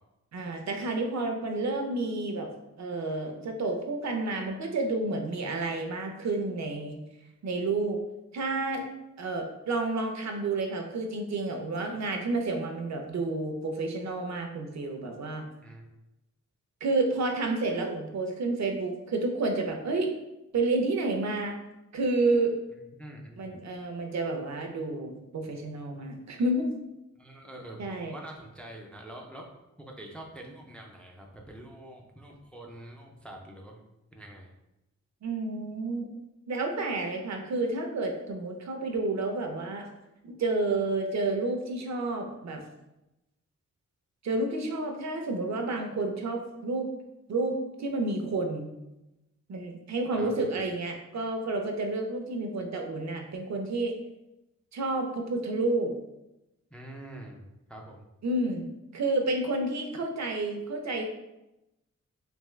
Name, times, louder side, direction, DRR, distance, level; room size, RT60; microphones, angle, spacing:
voice 1, 0.3-2.5 2.8-7.0 7.4-8.0 8.3-8.8 9.2-15.4 16.8-20.1 20.5-21.6 21.9-22.5 23.4-26.7 27.8-28.1 35.2-36.1 36.5-39.9 40.2-42.6 44.2-46.9 47.3-48.7 49.5-53.9 54.7-55.9 58.2-61.0, right 2 dB, 65° right, 3 dB, 0.7 m, -30 dB
voice 2, 23.0-23.6 27.2-29.5 29.8-33.8 34.1-34.5 50.2-50.5 56.7-57.4 57.7-58.1, right 1 dB, 5° left, -1 dB, 0.4 m, -45 dB
3.5 x 3.1 x 3.2 m, 0.92 s
wide cardioid pair, 150°, 29 cm